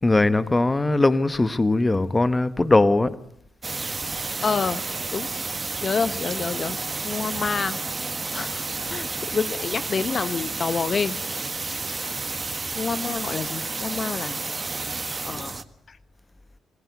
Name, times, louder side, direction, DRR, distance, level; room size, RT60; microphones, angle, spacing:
voice 1, 0.0-3.2, left 2 dB, 25° left, 1.3 m, -20 dB
sound 1, 3.6-15.6, right 3 dB, 30° right, 1.6 m, -31 dB
voice 2, 4.4-4.8 5.1-5.3 5.8-6.8 7.0-7.8 8.3-8.6 8.9-11.2 12.7-14.4 15.2-15.6 15.9-16.0, left 5 dB, 50° left, 1.1 m, -27 dB
26.5 x 18.5 x 8.2 m
supercardioid pair, 50°, 0 cm